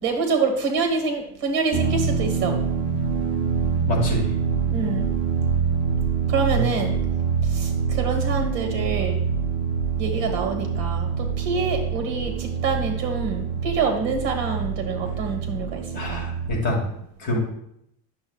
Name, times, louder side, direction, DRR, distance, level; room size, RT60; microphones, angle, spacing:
voice 1, 0.0-2.6 4.7-5.1 6.3-6.9 7.4-9.2 10.0-16.2 17.3-17.4, right 4 dB, 50° right, 4 dB, 1.4 m, -26 dB
sound 1, 1.7-16.5, right 6 dB, 20° right, 0.6 m, -25 dB
voice 2, 3.9-4.3 6.5-6.6 15.9-16.9 17.2-17.4, left 1 dB, 35° left, -1 dB, 1.7 m, -26 dB
9.6 x 6.8 x 2.3 m, 0.73 s
cardioid pair, 180°, 33 cm